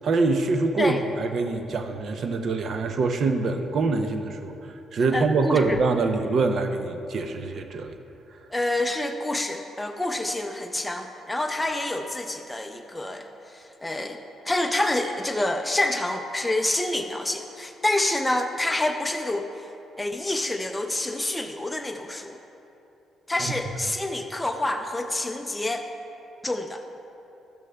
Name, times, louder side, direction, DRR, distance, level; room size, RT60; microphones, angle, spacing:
voice 1, 0.0-4.5 4.9-8.0 23.4-23.5, right 3 dB, 60° right, 6 dB, 0.5 m, -24 dB
voice 2, 5.1-5.8 8.5-14.2 14.5-19.7 20.0-22.4 23.3-25.9 26.4-26.8, left 1 dB, 10° left, 3 dB, 0.4 m, -27 dB
12.0 x 6.3 x 2.2 m, 2.9 s
cardioid pair, 90°, 0 cm